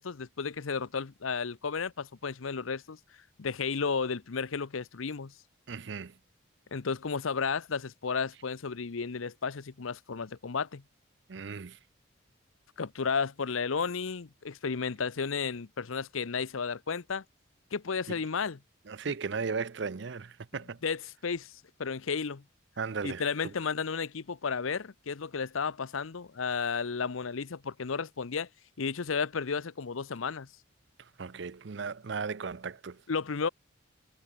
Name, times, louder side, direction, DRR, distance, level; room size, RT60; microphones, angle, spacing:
voice 1, 0.0-3.0 3.4-5.3 6.7-10.8 12.8-17.2 17.7-18.6 20.8-21.5 21.8-22.4 23.0-28.5 28.8-30.5 33.1-33.5, left 5 dB, 85° left, 0.7 m, -33 dB
voice 2, 5.7-6.1 11.3-11.8 18.1-18.2 18.9-20.8 22.8-23.5 31.2-33.0, right 5 dB, 60° right, 0.6 m, -36 dB
head